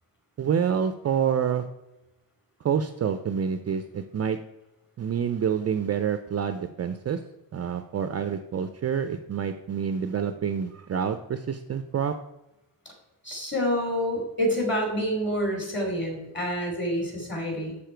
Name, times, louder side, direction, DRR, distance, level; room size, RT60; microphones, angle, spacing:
voice 1, 0.4-1.6 2.6-4.4 5.0-7.2 7.5-12.1, right 7 dB, 35° right, 9 dB, 0.5 m, -27 dB
voice 2, 13.2-17.8, equal, 25° left, 2 dB, 2.9 m, -27 dB
7.1 x 6.8 x 4.5 m, 0.95 s
cardioid pair, 115°, 45 cm